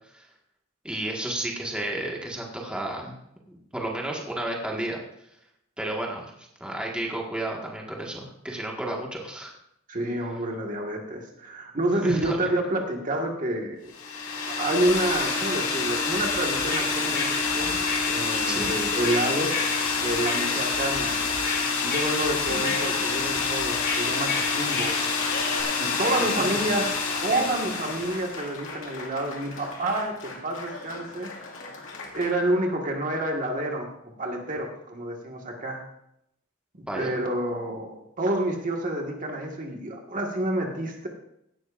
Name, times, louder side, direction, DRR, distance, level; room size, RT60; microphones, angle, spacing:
voice 1, 0.8-3.2 3.5-5.0 5.8-9.5 12.0-12.4 18.4-18.7 26.2-26.7 36.8-37.1, right 1 dB, 5° right, -2 dB, 1.7 m, -32 dB
voice 2, 9.9-13.9 14.5-19.7 20.0-21.2 21.8-24.9 25.8-26.9 27.2-31.3 32.1-33.9 34.2-35.8 36.7-41.1, right 1 dB, 40° right, 1 dB, 1.7 m, -28 dB
sound 1, 13.9-28.4, left 4 dB, 90° left, 3.3 m, -27 dB
sound 2, 16.1-25.6, left 3 dB, 50° left, 2.9 m, -34 dB
Applause, 22.5-32.3, left 3 dB, 70° left, 2.2 m, -40 dB
17.0 x 12.0 x 2.6 m, 0.78 s
head